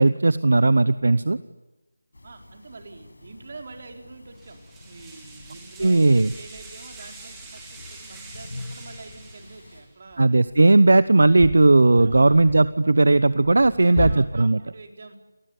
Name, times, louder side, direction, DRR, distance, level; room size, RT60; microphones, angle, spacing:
voice 1, 0.0-1.4 5.8-6.3 10.2-14.6, right 2 dB, 65° right, 16 dB, 0.8 m, -17 dB
sound 1, 2.1-9.8, left 2 dB, 75° left, 6.8 m, -45 dB
voice 2, 2.2-10.3 12.0-12.5 13.7-15.2, right 3 dB, 40° right, 4 dB, 4.4 m, -45 dB
sound 2, 4.4-9.9, right 3 dB, 5° right, 3.5 m, -45 dB
sound 3, 9.1-9.2 10.0-14.1, left 3 dB, 20° left, 4.6 m, -36 dB
28.5 x 20.0 x 9.8 m, 1.1 s
figure-of-eight pair, 170°, 0 cm